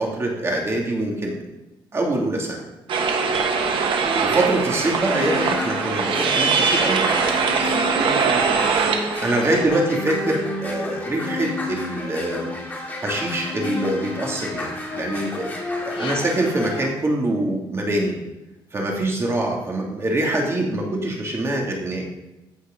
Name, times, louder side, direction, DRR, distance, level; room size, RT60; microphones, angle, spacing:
voice 1, 0.0-1.4 1.9-2.7 4.2-7.1 9.2-12.5 13.0-18.2 18.7-22.1, right 1 dB, 30° right, 0 dB, 2.5 m, -24 dB
sound 1, 2.9-9.6, right 5 dB, 70° right, 1.3 m, -22 dB
voice 2, 3.5-3.8 8.2-9.8 15.9-16.4, left 4 dB, 75° left, -1 dB, 2.6 m, -38 dB
sound 2, 4.8-16.8, left 3 dB, 20° left, 2.2 m, -31 dB
15.0 x 5.1 x 5.2 m, 0.98 s
cardioid pair, 135°, 9 cm